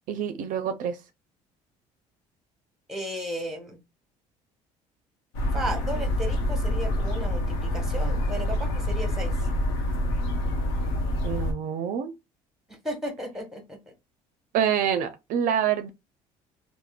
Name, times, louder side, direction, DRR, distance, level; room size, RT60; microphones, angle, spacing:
voice 1, 0.1-1.0 11.2-12.1 14.5-15.9, right 8 dB, 65° right, 0.4 m, -26 dB
voice 2, 2.9-3.8 5.5-9.3 12.7-13.8, equal, ahead, 1.2 m, -34 dB
sound 1, 5.3-11.5, left 1 dB, 85° left, 0.8 m, -27 dB
3.4 x 2.0 x 2.3 m
supercardioid pair, 85°, 15 cm